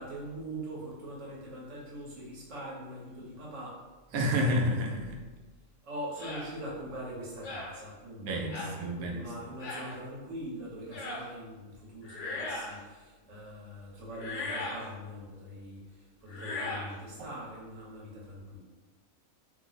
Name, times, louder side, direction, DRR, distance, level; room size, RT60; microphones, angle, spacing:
voice 1, 0.0-3.8 5.8-18.6, right 1 dB, 65° right, -5 dB, 1.3 m, -42 dB
voice 2, 4.1-5.2 8.2-9.3, equal, 85° right, 0 dB, 1.1 m, -30 dB
sound 1, 6.2-6.5 7.4-7.7 8.5-8.8 9.6-9.9 10.9-11.2 12.0-12.8 14.1-14.9 16.3-16.9, left 2 dB, 65° left, 1.0 m, -37 dB
2.9 x 2.0 x 4.0 m, 1.3 s
omnidirectional pair, 1.4 m